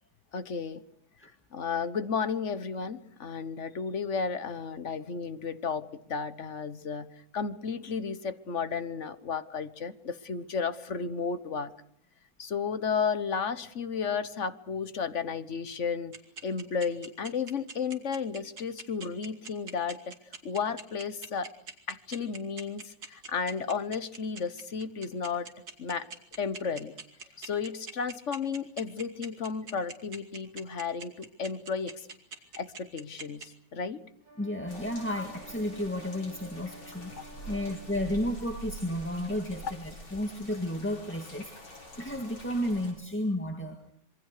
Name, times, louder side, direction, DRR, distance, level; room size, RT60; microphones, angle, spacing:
voice 1, 0.3-0.8 1.5-7.1 7.3-11.7 12.4-16.1 16.4-20.1 20.4-21.5 21.9-25.5 25.8-26.1 26.4-26.9 27.4-31.9 32.6-34.0 37.1-37.6, left 5 dB, 40° left, 13 dB, 1.3 m, -33 dB
sound 1, 16.1-33.5, right 4 dB, 50° right, 3.1 m, -42 dB
sound 2, 34.2-38.2, right 3 dB, 75° right, 6.4 m, -51 dB
voice 2, 34.4-43.9, left 1 dB, 5° left, 4 dB, 1.6 m, -33 dB
sound 3, 34.7-42.9, right 1 dB, 80° left, 7.2 m, -46 dB
26.5 x 23.5 x 6.7 m, 0.66 s
omnidirectional pair, 2.2 m